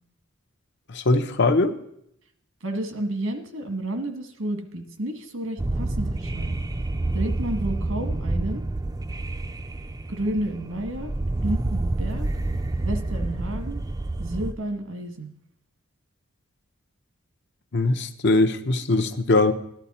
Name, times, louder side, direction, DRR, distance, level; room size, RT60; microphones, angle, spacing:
voice 1, 0.9-1.8 17.7-19.5, left 2 dB, 60° left, 8 dB, 0.8 m, -21 dB
voice 2, 2.6-6.6 7.1-8.6 10.1-12.3 12.8-13.8 14.2-15.3, right 1 dB, 80° right, 6 dB, 1.6 m, -31 dB
sound 1, 5.6-14.5, right 2 dB, 20° right, 0.4 m, -28 dB
13.5 x 11.5 x 4.2 m, 0.76 s
head